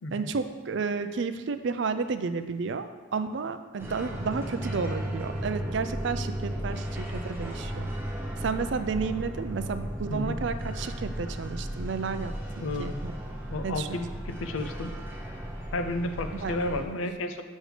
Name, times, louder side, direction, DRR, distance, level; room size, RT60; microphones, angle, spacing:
voice 1, 0.1-7.9 8.4-12.3 12.8-13.1 13.6-14.0 16.4-16.6, right 5 dB, 60° right, 9 dB, 0.4 m, -32 dB
sound 1, 3.8-16.8, equal, 10° right, 0.7 m, -35 dB
voice 2, 12.6-13.0 13.5-15.0 15.7-17.4, left 2 dB, 75° left, 7 dB, 0.6 m, -32 dB
8.0 x 6.3 x 3.3 m, 1.4 s
head